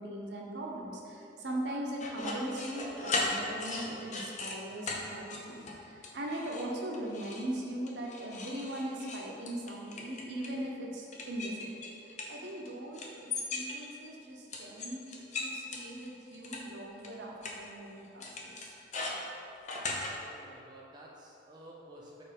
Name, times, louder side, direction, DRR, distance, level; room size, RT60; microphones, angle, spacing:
voice 1, 0.0-13.1 13.5-15.0 15.4-18.7, right 1 dB, 65° right, -1 dB, 0.9 m, -40 dB
sound 1, 2.0-4.6 4.9-5.0 5.3-5.8 6.0-6.7 6.9-7.5 7.9-10.6 11.1-12.7 12.9-14.1 14.5-16.6 17.0-17.1 17.4-17.5 18.2-20.1, left 3 dB, 40° left, 0.7 m, -37 dB
voice 2, 20.1-22.2, right 1 dB, 25° right, -4 dB, 0.5 m, -52 dB
4.4 x 4.4 x 5.2 m, 2.7 s
head